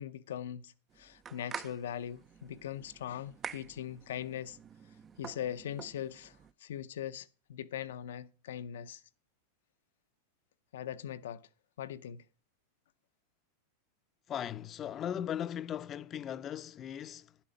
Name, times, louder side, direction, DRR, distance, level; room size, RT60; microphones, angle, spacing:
voice 1, 0.0-4.6 5.2-9.0 10.7-11.4 11.8-12.2, left 10 dB, 80° left, 0.6 m, -41 dB
sound 1, 0.9-6.5, right 7 dB, 25° right, 0.4 m, -48 dB
voice 2, 14.3-17.4, left 10 dB, 35° left, 0.5 m, -38 dB
10.5 x 7.3 x 5.2 m
hypercardioid pair, 110°, 0 cm